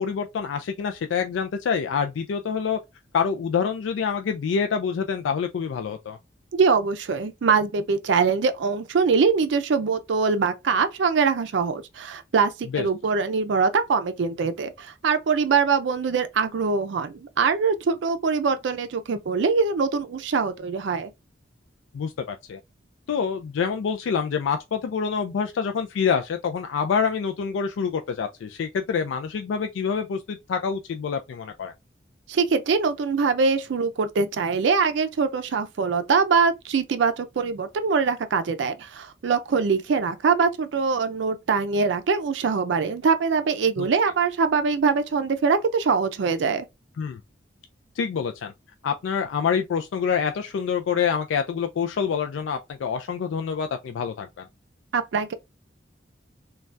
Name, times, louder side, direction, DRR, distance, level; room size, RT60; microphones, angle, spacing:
voice 1, 0.0-2.8 3.1-6.2 12.7-12.9 21.9-22.6 23.1-31.7 43.8-43.9 47.0-47.2 48.0-48.5 48.8-54.5, left 6 dB, 90° left, 0.3 m, -26 dB
voice 2, 6.5-21.1 32.3-46.7 54.9-55.3, right 5 dB, 75° right, 0.4 m, -23 dB
3.2 x 2.2 x 2.5 m
head